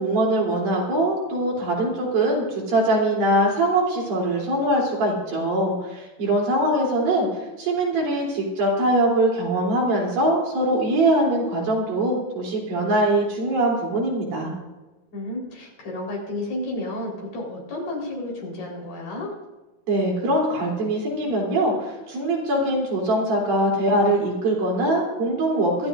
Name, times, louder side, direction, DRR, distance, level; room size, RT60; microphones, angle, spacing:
voice 1, 0.0-7.3 7.6-14.5 19.9-25.9, right 1 dB, 65° right, -2 dB, 5.1 m, -22 dB
voice 2, 15.1-19.3, left 1 dB, 65° left, -2 dB, 5.9 m, -31 dB
25.0 x 12.5 x 2.6 m, 1.1 s
omnidirectional pair, 4.4 m